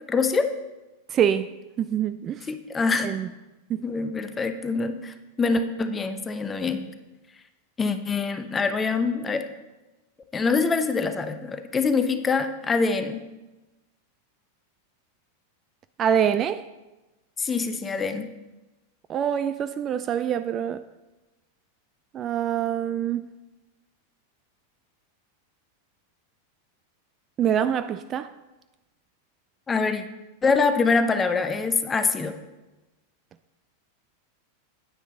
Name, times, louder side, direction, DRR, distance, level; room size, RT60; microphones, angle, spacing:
voice 1, 0.1-0.5 2.5-3.1 3.8-6.8 7.8-9.5 10.3-13.3 17.4-18.3 29.7-30.0 30.4-32.3, left 4 dB, 15° left, 0.8 m, -24 dB
voice 2, 1.1-2.5 3.0-3.3 3.7-3.8 16.0-16.6 19.1-20.8 22.1-23.2 27.4-28.3, right 9 dB, 30° right, 0.3 m, -25 dB
9.5 x 9.3 x 3.8 m
figure-of-eight pair, 90°, 0 cm